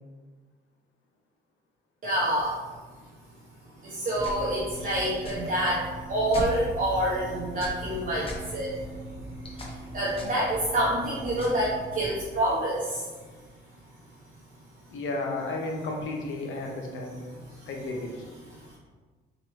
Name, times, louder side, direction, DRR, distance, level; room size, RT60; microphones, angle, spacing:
voice 1, 2.0-2.5 3.8-8.7 9.5-13.1 17.0-17.7 18.4-18.8, right 1 dB, 45° right, -7 dB, 0.9 m, -28 dB
sound 1, 4.2-12.2, equal, 30° left, 0.9 m, -39 dB
voice 2, 14.9-17.2 17.7-18.1, left 2 dB, 80° left, 1 dB, 0.8 m, -33 dB
4.2 x 2.9 x 3.1 m, 1.4 s
cardioid pair, 90°, 20 cm